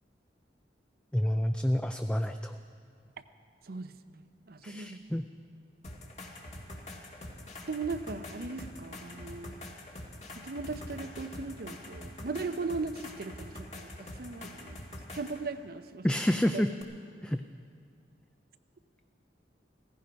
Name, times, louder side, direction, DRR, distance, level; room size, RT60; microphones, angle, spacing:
voice 1, 1.1-2.6 4.6-5.3 16.0-16.7 17.2-17.4, equal, 5° left, 7 dB, 0.4 m, -28 dB
voice 2, 3.6-5.0 7.7-9.6 10.3-14.8 15.1-16.1 16.5-16.6, right 3 dB, 60° right, 11 dB, 0.6 m, -38 dB
sound 1, 5.8-15.4 16.8-16.9, left 1 dB, 40° left, 1.8 m, -45 dB
16.5 x 15.0 x 5.2 m, 2.1 s
head